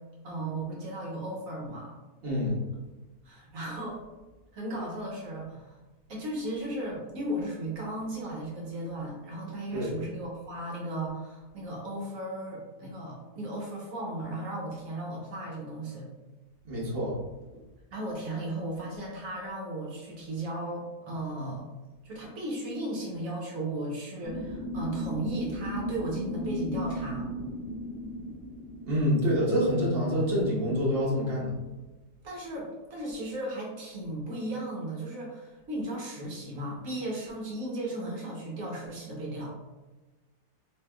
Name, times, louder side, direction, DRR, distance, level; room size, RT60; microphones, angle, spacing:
voice 1, 0.2-1.9 3.2-4.0 4.5-5.8 6.1-16.1 17.9-21.6 22.0-27.3 32.2-39.5, right 1 dB, 60° right, -3 dB, 1.3 m, -36 dB
voice 2, 2.2-2.6 9.7-9.9 16.6-17.2 28.8-31.6, equal, 40° right, -6 dB, 1.3 m, -26 dB
sound 1, 24.2-29.2, equal, 85° left, 1.6 m, -35 dB
4.1 x 3.3 x 2.2 m, 1.1 s
omnidirectional pair, 1.7 m